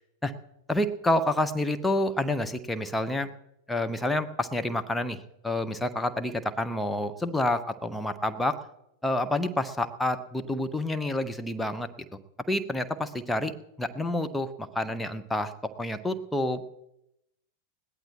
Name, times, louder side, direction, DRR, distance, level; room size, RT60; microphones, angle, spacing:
voice 1, 0.7-3.3 3.7-5.2 5.4-8.6 9.0-11.9 12.5-13.5 13.8-15.5 15.8-16.6, left 1 dB, 5° left, 8 dB, 0.9 m, -28 dB
20.5 x 16.0 x 3.0 m, 0.84 s
figure-of-eight pair, 90°, 0 cm